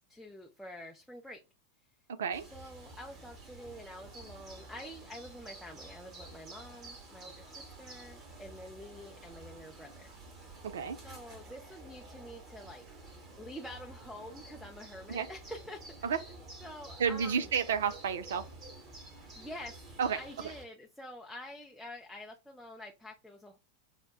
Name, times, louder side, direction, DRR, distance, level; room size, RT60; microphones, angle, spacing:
voice 1, 0.1-1.4 2.5-10.1 11.0-12.8 13.4-16.2 16.6-17.5 19.2-19.8 20.2-23.6, left 1 dB, ahead, 0.5 m, -47 dB
sound 1, 2.3-20.6, right 2 dB, 30° right, 1.1 m, -50 dB
voice 2, 10.6-11.0 15.1-15.3 16.0-16.2 17.0-18.5 20.0-20.2, right 7 dB, 60° right, 0.4 m, -31 dB
5.6 x 2.1 x 2.3 m
figure-of-eight pair, 90°, 0 cm